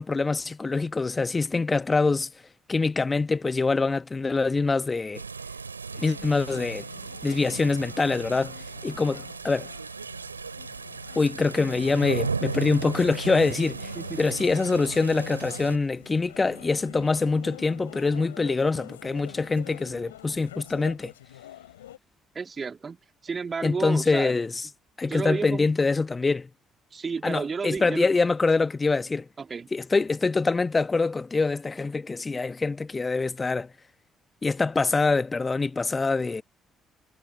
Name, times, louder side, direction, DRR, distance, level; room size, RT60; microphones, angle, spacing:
voice 1, 0.0-2.3 2.7-5.2 6.0-6.9 7.2-9.7 11.1-13.9 14.2-21.1 23.6-24.5 25.0-26.5 27.2-29.3 29.7-33.7 34.4-36.4, left 3 dB, 25° left, 1.3 m, -25 dB
sound 1, 5.1-15.8, right 5 dB, 85° right, 6.2 m, -36 dB
sound 2, 5.9-22.0, left 12 dB, 75° left, 5.6 m, -46 dB
voice 2, 22.3-23.0 23.2-24.4 25.1-25.7 26.9-28.1 29.4-29.7, right 5 dB, 35° right, 2.8 m, -32 dB
figure-of-eight pair, 45°, 0 cm